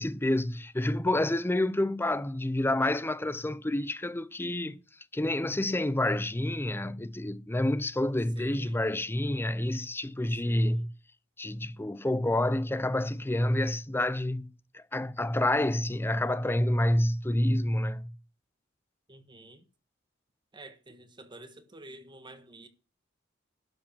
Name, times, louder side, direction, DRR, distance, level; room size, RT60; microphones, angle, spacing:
voice 1, 0.0-4.8 5.1-10.9 11.4-18.1, left 1 dB, 10° left, 0.6 m, -28 dB
voice 2, 8.3-8.8 10.4-10.9 19.1-19.7 20.5-22.7, right 1 dB, 25° right, 1.3 m, -49 dB
12.0 x 5.2 x 7.2 m
head